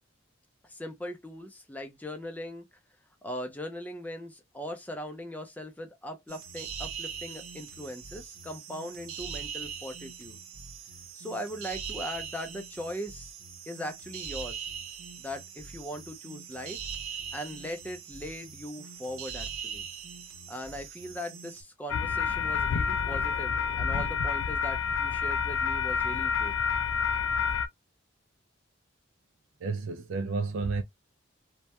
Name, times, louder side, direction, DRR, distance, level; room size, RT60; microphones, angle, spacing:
voice 1, 0.6-2.6 3.2-10.4 11.2-13.3 13.7-14.7 15.2-16.8 17.3-19.8 20.5-26.5, equal, 10° left, 0.4 m, -39 dB
sound 1, 6.3-21.6, right 7 dB, 85° right, 0.7 m, -41 dB
sound 2, 21.9-27.7, left 6 dB, 75° left, 0.4 m, -28 dB
voice 2, 29.6-30.8, right 4 dB, 70° right, 0.3 m, -31 dB
2.2 x 2.1 x 2.7 m
head